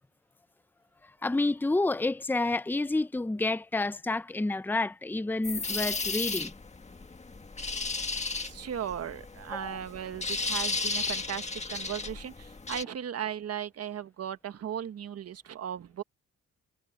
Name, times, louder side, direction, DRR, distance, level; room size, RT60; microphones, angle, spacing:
voice 1, 1.2-6.5 9.5-9.8, left 2 dB, 5° left, 0.7 m, -29 dB
sound 1, 5.4-12.8, left 3 dB, 20° left, 1.8 m, -34 dB
voice 2, 8.4-16.0, right 9 dB, 55° right, 1.5 m, -37 dB
cardioid pair, 90°, 30 cm